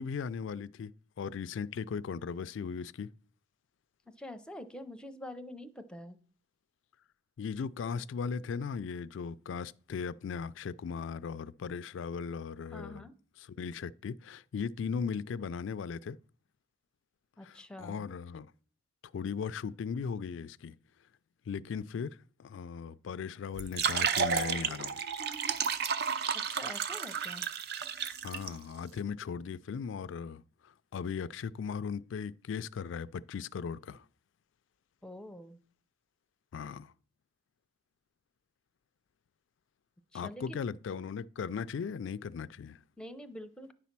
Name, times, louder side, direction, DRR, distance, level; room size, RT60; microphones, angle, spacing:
voice 1, 0.0-3.1 7.4-13.1 13.4-16.2 17.4-18.5 19.1-20.7 21.5-25.0 28.2-34.0 36.5-36.9 40.1-42.8, left 6 dB, 65° left, 0.3 m, -38 dB
voice 2, 4.2-6.2 12.7-13.1 17.4-18.0 26.5-27.5 35.0-35.6 40.1-40.6 43.0-43.7, left 1 dB, 5° left, 0.6 m, -46 dB
Slowly Pouring Water Into A Glass, 23.5-28.5, right 6 dB, 55° right, 0.6 m, -32 dB
10.0 x 4.1 x 5.9 m
head